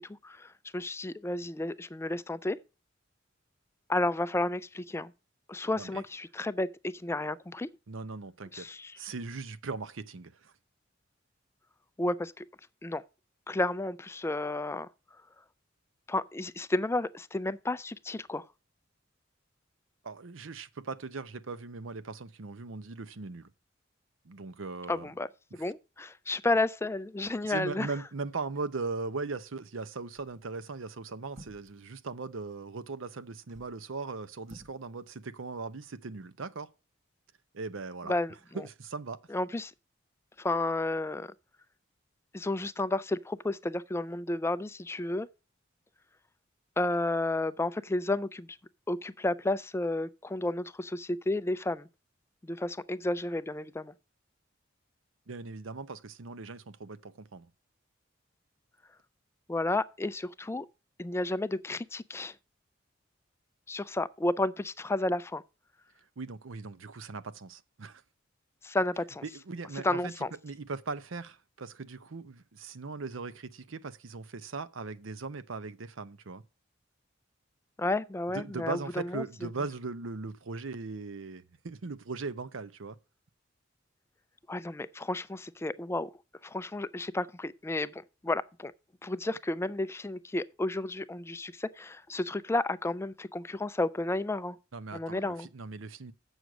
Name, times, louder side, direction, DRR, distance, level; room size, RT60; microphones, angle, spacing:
voice 1, 0.2-2.6 3.9-5.1 5.5-7.7 8.5-9.0 12.0-12.5 12.8-13.0 13.5-14.9 16.1-18.5 24.9-25.3 25.6-27.9 38.1-38.6 39.3-39.7 40.4-41.3 42.3-45.3 46.8-48.6 48.9-51.9 52.4-53.9 59.5-60.7 61.0-62.3 63.7-65.4 68.6-69.2 69.8-70.3 77.8-79.2 84.5-86.1 86.4-88.7 89.0-94.6 94.9-95.5, left 2 dB, 15° left, 0.4 m, -32 dB
voice 2, 7.9-10.5 20.0-23.5 24.2-25.1 27.5-36.7 37.5-38.1 38.5-39.2 55.3-57.5 66.2-68.0 69.2-70.1 70.4-76.4 78.3-83.0 94.7-96.1, right 4 dB, 85° right, 0.7 m, -39 dB
sound 1, 30.2-30.5 31.3-31.8 33.3-33.8 34.4-34.8 35.1-35.2, right 1 dB, 40° right, 1.2 m, -52 dB
8.0 x 6.4 x 6.0 m
head